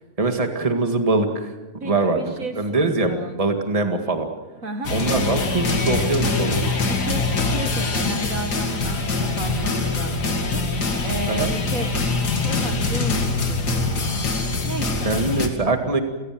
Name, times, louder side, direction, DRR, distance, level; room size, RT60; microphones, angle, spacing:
voice 1, 0.2-1.5 1.8-4.3 4.9-6.8 11.3-11.5 15.0-16.0, right 3 dB, 20° right, 5 dB, 2.0 m, -23 dB
voice 2, 1.8-3.4 4.6-4.9 6.9-11.9 12.4-14.3 14.6-15.1, right 2 dB, 55° right, 6 dB, 2.2 m, -32 dB
sound 1, 4.8-15.5, left 3 dB, 85° left, 3.0 m, -23 dB
29.5 x 16.5 x 7.8 m, 1.2 s
omnidirectional pair, 1.7 m